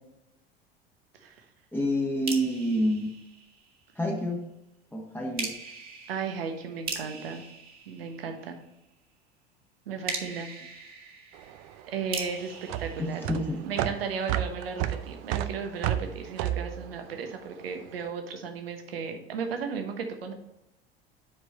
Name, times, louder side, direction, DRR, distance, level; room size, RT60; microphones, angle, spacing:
voice 1, 1.7-3.1 3.9-4.5 4.9-5.6 13.0-13.6, equal, 5° left, -1 dB, 1.4 m, -28 dB
sound 1, 2.3-4.0 5.4-8.7 10.1-14.0, right 4 dB, 30° right, 1.7 m, -40 dB
voice 2, 6.1-7.4 7.9-8.6 9.9-10.5 11.9-13.3 13.6-20.3, right 5 dB, 70° right, 5 dB, 1.2 m, -35 dB
sound 2, 11.3-17.9, right 12 dB, 50° right, 0.6 m, -32 dB
8.3 x 4.7 x 4.1 m, 0.89 s
figure-of-eight pair, 75°, 31 cm